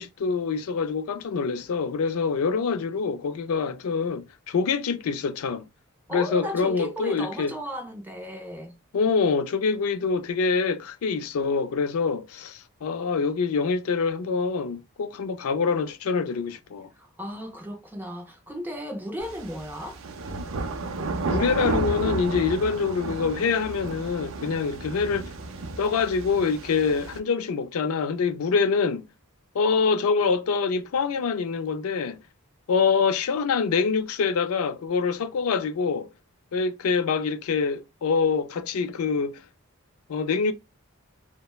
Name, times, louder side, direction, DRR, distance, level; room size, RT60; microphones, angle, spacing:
voice 1, 0.0-5.7 6.1-7.5 8.9-16.9 21.3-25.3 25.8-29.1 29.5-32.2 32.7-36.1 36.5-39.4 40.1-40.5, left 5 dB, 80° left, 0.4 m, -25 dB
voice 2, 6.1-8.8 16.9-20.0, equal, 10° right, 0.5 m, -35 dB
sound 1, 19.2-27.2, right 3 dB, 60° right, 0.5 m, -32 dB
3.0 x 2.1 x 2.2 m
head